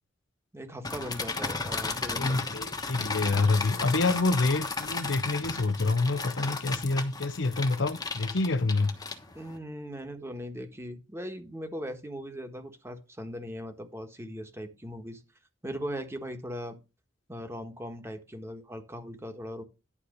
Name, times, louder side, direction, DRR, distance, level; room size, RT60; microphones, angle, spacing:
voice 1, 0.5-2.4 9.3-15.2 15.6-16.8 17.3-19.6, equal, 15° right, 1.4 m, -39 dB
sound 1, 0.8-9.6, left 4 dB, 20° left, 1.2 m, -34 dB
voice 2, 1.6-8.9, left 3 dB, 75° left, 0.8 m, -27 dB
11.0 x 4.3 x 6.6 m
head